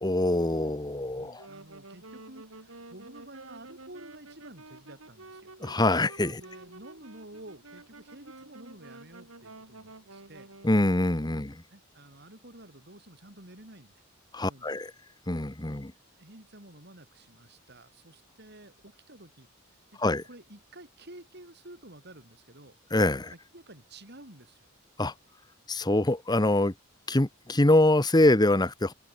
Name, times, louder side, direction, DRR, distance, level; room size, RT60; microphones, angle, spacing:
voice 1, 0.0-1.5 5.6-6.4 10.6-11.6 14.3-14.9 15.3-15.9 20.0-20.2 22.9-23.3 25.0-25.1 25.7-26.7 27.1-28.9, left 1 dB, 20° left, 1.1 m, -24 dB
voice 2, 1.2-5.5 6.4-10.5 11.3-14.0 14.5-14.7 16.2-20.0 20.3-22.8 23.3-24.7, right 1 dB, 50° right, 6.5 m, -51 dB
Wind instrument woodwind instrument, 1.3-11.0, right 2 dB, 85° right, 4.2 m, -49 dB
open air
head